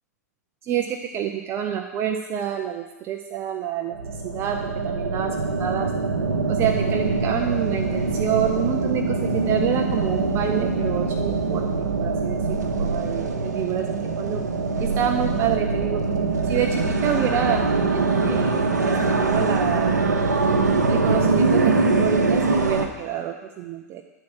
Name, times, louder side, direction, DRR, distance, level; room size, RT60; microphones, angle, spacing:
voice 1, 0.6-5.9 6.5-14.4 14.8-16.0 16.4-17.6 17.9-20.0 20.9-24.0, right 9 dB, 25° right, 3 dB, 0.5 m, -28 dB
sound 1, 3.9-22.9, right 3 dB, 70° right, 0.8 m, -23 dB
9.4 x 4.5 x 6.1 m, 1.1 s
figure-of-eight pair, 100°, 9 cm